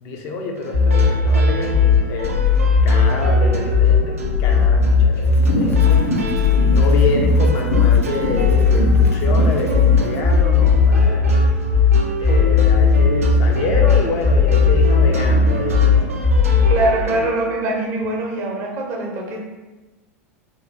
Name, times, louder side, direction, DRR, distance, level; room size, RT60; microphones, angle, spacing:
voice 1, 0.0-2.3 2.8-6.0 6.4-11.4 12.2-16.2, left 3 dB, 45° left, 2 dB, 0.5 m, -27 dB
sound 1, 0.6-17.4, right 2 dB, 70° right, 0.4 m, -30 dB
sound 2, 0.7-16.7, left 5 dB, 70° left, 1.1 m, -15 dB
sound 3, 5.3-10.1, left 1 dB, 90° left, 0.6 m, -26 dB
voice 2, 16.7-19.4, right 2 dB, 40° right, 0 dB, 0.7 m, -23 dB
3.0 x 3.0 x 2.5 m, 1.2 s
figure-of-eight pair, 85°, 8 cm